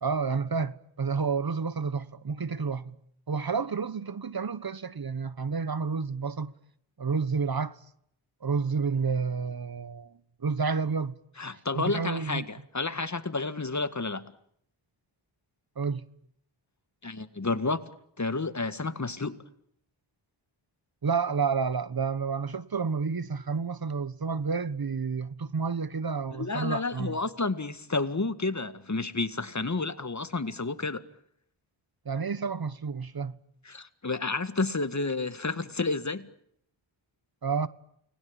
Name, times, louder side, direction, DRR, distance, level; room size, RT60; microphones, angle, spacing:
voice 1, 0.0-3.0 3.3-6.5 7.0-7.8 8.4-11.1 11.7-12.5 15.8-16.1 21.0-27.2 32.0-33.3 37.4-37.7, right 5 dB, 50° right, 1.3 m, -30 dB
voice 2, 11.4-14.3 17.0-17.9 18.2-19.4 26.3-31.1 33.7-36.3, left 3 dB, 35° left, 1.9 m, -31 dB
29.5 x 21.0 x 8.9 m
cardioid pair, 55°, 48 cm